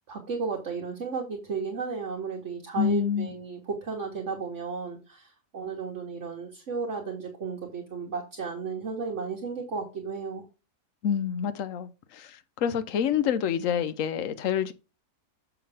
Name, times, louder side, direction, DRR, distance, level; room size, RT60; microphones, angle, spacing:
voice 1, 0.1-10.5, right 5 dB, 50° right, 1.6 m, -34 dB
voice 2, 2.8-3.3 11.0-12.3 12.6-14.7, left 8 dB, 60° left, 1.1 m, -27 dB
7.1 x 6.0 x 3.4 m
omnidirectional pair, 1.6 m